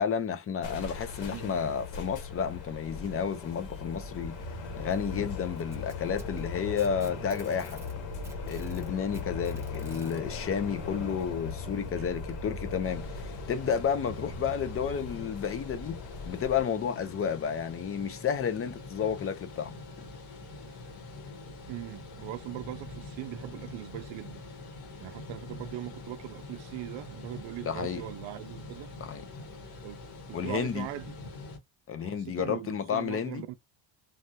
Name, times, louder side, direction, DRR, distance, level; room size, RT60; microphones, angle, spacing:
voice 1, 0.0-4.4 4.8-7.8 8.5-16.0 16.3-19.7 27.6-28.0 29.0-29.2 30.3-30.9 31.9-33.5, left 7 dB, 30° left, 0.4 m, -31 dB
sound 1, 0.6-16.6, left 4 dB, 60° left, 1.2 m, -39 dB
Packing tape duct tape, 5.5-8.0 8.2-10.2 11.3-11.4 12.0-12.1 12.9-13.0, right 2 dB, 5° right, 0.8 m, -52 dB
sound 2, 12.8-31.6, left 3 dB, 90° left, 1.4 m, -45 dB
voice 2, 21.7-24.4 25.0-28.9 29.8-30.0 30.3-31.1 32.0-33.7, right 14 dB, 65° right, 0.6 m, -40 dB
3.3 x 2.3 x 2.5 m
cardioid pair, 120°, 50 cm